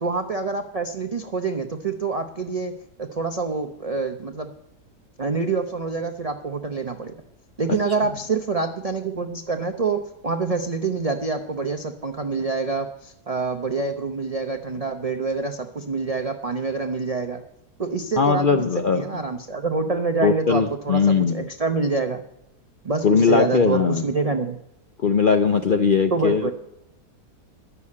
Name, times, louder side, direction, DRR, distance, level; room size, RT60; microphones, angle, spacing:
voice 1, 0.0-4.5 5.2-7.1 7.6-17.4 17.8-18.6 18.9-22.2 22.8-24.6 26.1-26.5, right 4 dB, 50° right, 5 dB, 0.4 m, -26 dB
voice 2, 18.2-19.1 20.2-21.4 23.0-24.0 25.0-26.5, left 5 dB, 75° left, 6 dB, 0.4 m, -19 dB
11.0 x 6.9 x 8.4 m, 0.82 s
omnidirectional pair, 1.8 m